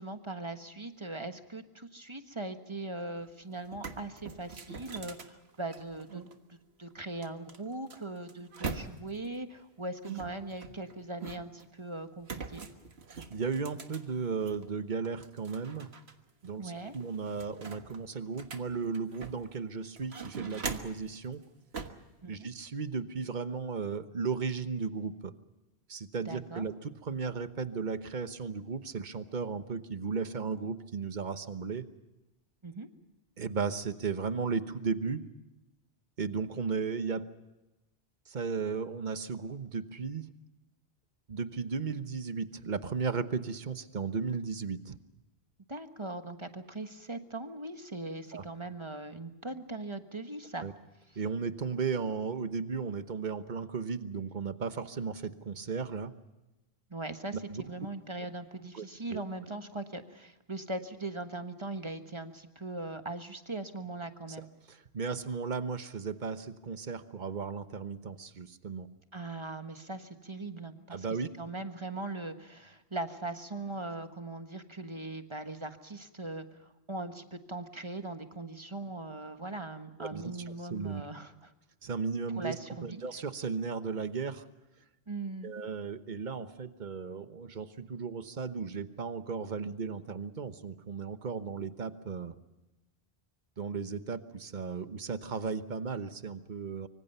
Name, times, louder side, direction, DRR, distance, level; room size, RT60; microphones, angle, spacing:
voice 1, 0.0-6.2 6.5-12.6 16.6-16.9 22.2-22.5 26.2-26.7 32.6-32.9 45.7-50.6 56.9-64.5 69.1-71.1 71.4-76.6 76.9-81.5 82.3-83.0 85.1-85.5, right 2 dB, 25° right, 8 dB, 1.4 m, -40 dB
sound 1, 3.2-3.3 3.6-6.3 7.2-9.3 10.0-11.7 12.2-14.6 15.0-16.1 16.4-16.5 16.9-19.6 20.0-21.1 21.7-22.1, right 5 dB, 75° right, 1.8 m, -42 dB
voice 2, 13.1-15.9 16.4-21.4 22.3-25.3 25.9-31.8 33.4-35.2 36.2-37.3 38.3-40.3 41.3-45.0 48.3-48.4 50.6-50.7 51.2-56.1 57.5-57.6 58.7-58.9 59.1-59.2 64.7-68.9 70.9-71.3 80.0-80.3 80.7-81.0 81.8-82.5 82.8-84.5 85.4-92.3 93.6-96.9, right 5 dB, 45° right, 11 dB, 1.2 m, -35 dB
25.0 x 24.5 x 5.6 m, 1.0 s
omnidirectional pair, 1.1 m